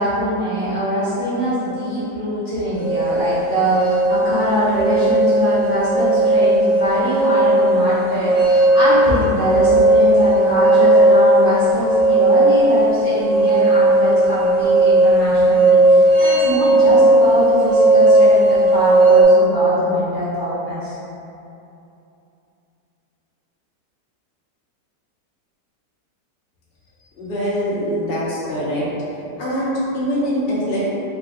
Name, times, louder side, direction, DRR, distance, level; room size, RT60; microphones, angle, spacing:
voice 1, 0.0-21.0, equal, 70° left, -12 dB, 0.4 m, -22 dB
sound 1, 2.7-19.2, right 2 dB, 35° right, 1.3 m, -15 dB
voice 2, 27.2-28.9 29.4-30.9, equal, 40° left, -9 dB, 0.9 m, -23 dB
3.6 x 3.5 x 2.4 m, 2.8 s
omnidirectional pair, 1.9 m